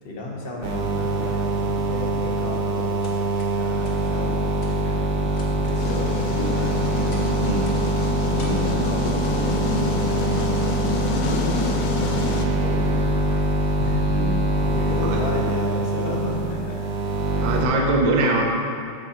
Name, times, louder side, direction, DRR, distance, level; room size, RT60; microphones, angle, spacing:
voice 1, 0.0-3.0 3.5-7.8 8.2-10.5 11.1-13.1 13.8-16.9 17.3-17.4, left 1 dB, 35° left, -2 dB, 1.0 m, -33 dB
sound 1, 0.6-17.6, right 2 dB, 80° right, 1.6 m, -24 dB
sound 2, 3.0-3.5 3.8-3.9 4.6-4.7 5.3-7.3 7.6-7.8 8.4-8.6 9.2-9.4, left 2 dB, 60° left, 1.6 m, -43 dB
sound 3, 5.8-12.4, left 5 dB, 75° left, 1.4 m, -29 dB
voice 2, 8.4-8.8 14.1-14.4 15.0-15.2 17.4-18.4, right 3 dB, 65° right, -1 dB, 1.4 m, -23 dB
8.2 x 6.4 x 4.4 m, 2.5 s
omnidirectional pair, 2.2 m